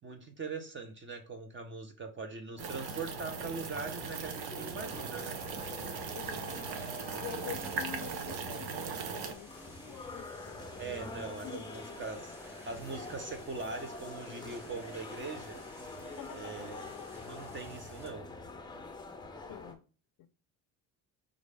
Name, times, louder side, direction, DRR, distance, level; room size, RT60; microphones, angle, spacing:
voice 1, 0.0-5.4 10.8-15.6 16.3-16.9 17.2-18.3, right 4 dB, 30° right, 0.8 m, -41 dB
sound 1, 2.6-19.7, left 3 dB, 10° left, 0.6 m, -46 dB
sound 2, 2.6-9.3, right 6 dB, 70° right, 0.9 m, -39 dB
sound 3, 5.2-18.1, equal, 5° right, 1.1 m, -55 dB
voice 2, 6.2-6.7 7.2-10.6 11.4-11.7 16.2-16.5 19.5-19.8 20.2-20.3, left 12 dB, 55° left, 0.5 m, -46 dB
5.1 x 2.5 x 3.3 m
cardioid pair, 120°, 38 cm